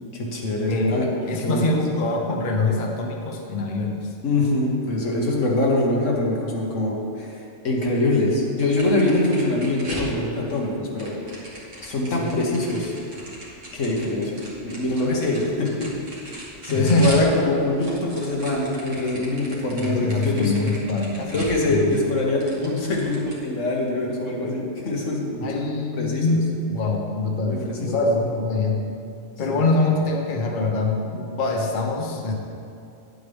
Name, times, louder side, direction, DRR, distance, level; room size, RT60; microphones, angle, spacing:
voice 1, 0.1-1.0 1.4-1.6 4.2-11.1 11.8-12.9 13.7-15.9 16.3-20.5 21.3-26.4 27.4-28.0 29.5-29.6, left 2 dB, 85° left, -2 dB, 1.7 m, -24 dB
voice 2, 0.7-4.1 12.2-12.4 16.7-17.2 19.8-21.4 21.6-21.9 25.4-28.9 29.4-32.3, left 2 dB, 45° left, 1 dB, 0.9 m, -24 dB
sound 1, 8.6-10.6 11.0-17.3 17.6-22.1 22.4-23.4, right 1 dB, 75° right, 2.1 m, -38 dB
10.5 x 8.0 x 3.5 m, 2.6 s
omnidirectional pair, 1.3 m